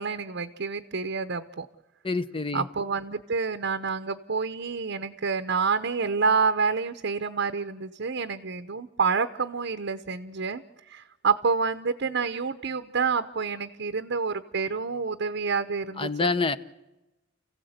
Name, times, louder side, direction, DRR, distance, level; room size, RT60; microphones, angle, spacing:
voice 1, 0.0-1.7 2.5-10.6 10.9-16.3, right 5 dB, 65° right, 9 dB, 0.8 m, -28 dB
voice 2, 2.0-2.6 16.0-16.6, left 3 dB, 25° left, 13 dB, 0.7 m, -27 dB
29.5 x 16.0 x 8.0 m, 1.0 s
head